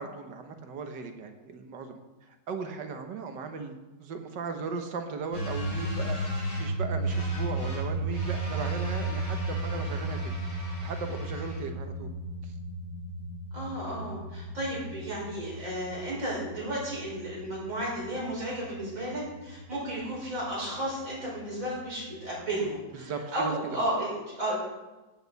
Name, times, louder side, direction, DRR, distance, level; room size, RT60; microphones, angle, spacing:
voice 1, 0.0-2.0 2.5-6.2 6.6-10.3 10.6-12.1 12.4-12.5 22.9-23.9, right 5 dB, 85° right, 6 dB, 1.7 m, -37 dB
sound 1, 5.3-22.8, right 1 dB, 90° left, 5.2 m, -35 dB
voice 2, 13.5-24.6, right 1 dB, 50° right, -6 dB, 5.5 m, -33 dB
16.0 x 8.4 x 4.0 m, 1.1 s
omnidirectional pair, 1.8 m